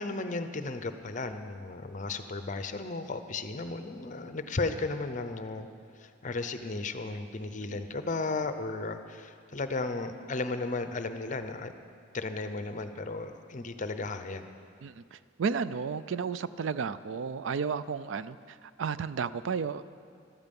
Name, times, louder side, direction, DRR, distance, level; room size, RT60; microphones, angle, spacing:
voice 1, 0.0-5.7 6.0-11.7 12.1-14.4, left 3 dB, 40° left, 9 dB, 0.7 m, -35 dB
voice 2, 14.8-19.9, right 6 dB, 75° right, 15 dB, 0.4 m, -33 dB
14.0 x 13.5 x 5.3 m, 2.3 s
head